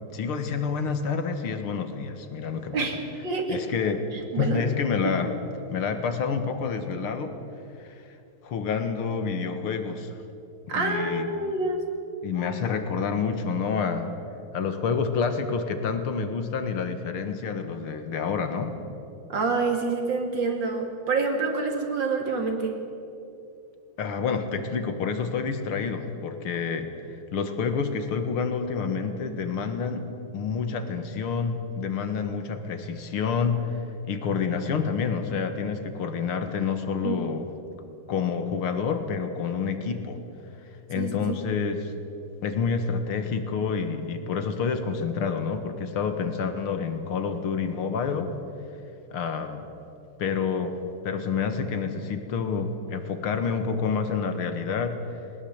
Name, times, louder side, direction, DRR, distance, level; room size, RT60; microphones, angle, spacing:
voice 1, 0.1-2.9 3.5-4.1 4.4-5.3 5.7-7.3 7.8-7.9 8.4-10.1 10.8-11.3 12.2-14.1 14.5-18.7 24.0-30.1 30.3-37.5 38.1-40.2 40.9-41.9 42.4-48.3 49.1-49.7 50.2-50.8 51.0-55.2, left 5 dB, 85° left, 8 dB, 2.3 m, -28 dB
voice 2, 2.7-3.6 4.3-4.7 10.7-11.8 19.3-22.8 37.0-37.2 41.0-41.4, right 3 dB, 60° right, 2 dB, 3.2 m, -27 dB
20.0 x 19.5 x 8.1 m, 2.8 s
omnidirectional pair, 2.3 m